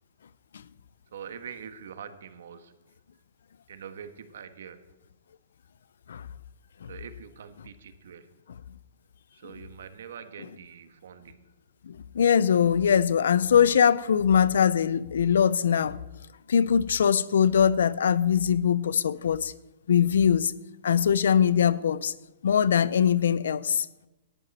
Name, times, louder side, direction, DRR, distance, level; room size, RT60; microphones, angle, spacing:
voice 1, 1.1-2.7 3.7-4.8 6.9-8.3 9.3-11.4, right 7 dB, 75° right, 1.4 m, -44 dB
voice 2, 11.9-16.0 16.5-19.5 19.9-20.5 20.8-22.1 22.4-23.9, left 8 dB, 85° left, 0.6 m, -22 dB
18.5 x 11.0 x 4.3 m
hypercardioid pair, 155°, 0 cm